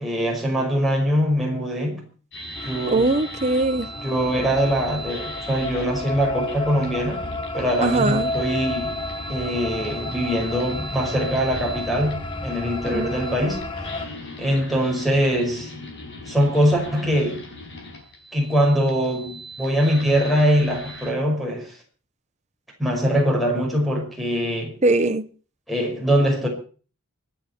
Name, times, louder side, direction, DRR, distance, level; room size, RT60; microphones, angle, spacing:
voice 1, 0.0-2.0 2.6-3.1 4.0-7.2 7.5-9.0 9.3-15.7 16.3-17.4 18.3-21.8 22.8-24.7 25.7-26.5, equal, ahead, 5.6 m, -22 dB
sound 1, 2.3-21.1, right 1 dB, 55° left, 5.2 m, -39 dB
sound 2, 2.6-14.1, left 2 dB, 25° left, 1.3 m, -32 dB
voice 2, 2.9-3.9 7.8-8.3 12.9-13.5 24.8-25.2, right 2 dB, 30° right, 1.0 m, -21 dB
25.5 x 9.4 x 4.6 m
head